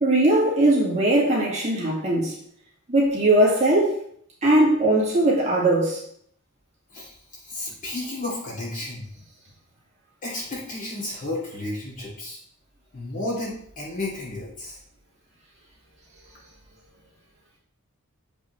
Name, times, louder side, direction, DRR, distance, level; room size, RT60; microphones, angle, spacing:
voice 1, 0.0-2.3 2.9-3.9 4.4-6.0, right 1 dB, 30° right, -5 dB, 2.0 m, -19 dB
voice 2, 6.9-9.1 10.2-12.4 12.9-14.8, left 2 dB, 40° left, -5 dB, 2.7 m, -32 dB
7.1 x 5.4 x 3.1 m, 0.65 s
head